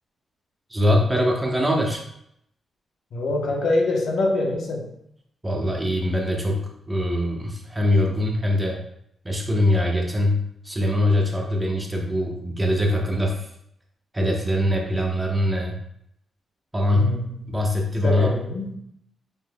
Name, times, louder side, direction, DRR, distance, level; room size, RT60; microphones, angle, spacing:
voice 1, 0.7-2.0 5.4-8.8 9.2-13.5 14.1-15.7 16.7-17.1 17.5-18.4, left 1 dB, 15° right, 0 dB, 1.0 m, -22 dB
voice 2, 3.1-4.9 16.9-17.5 18.0-18.7, left 2 dB, 70° left, 0 dB, 1.0 m, -25 dB
5.3 x 4.1 x 2.3 m, 0.73 s
cardioid pair, 110°, 0 cm